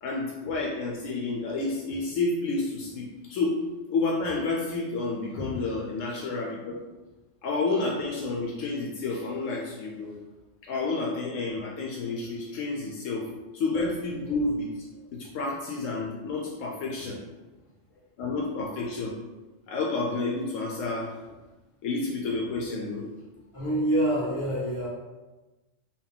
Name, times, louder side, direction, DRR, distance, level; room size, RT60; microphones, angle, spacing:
voice 1, 0.0-3.6 3.9-6.8 7.4-10.1 10.6-13.3 13.5-14.7 15.1-17.2 18.2-19.1 19.7-21.1 21.8-23.1, left 3 dB, 75° left, -2 dB, 0.9 m, -30 dB
voice 2, 23.5-24.9, right 1 dB, 20° left, -9 dB, 1.6 m, -27 dB
3.9 x 2.3 x 3.6 m, 1.1 s
omnidirectional pair, 1.3 m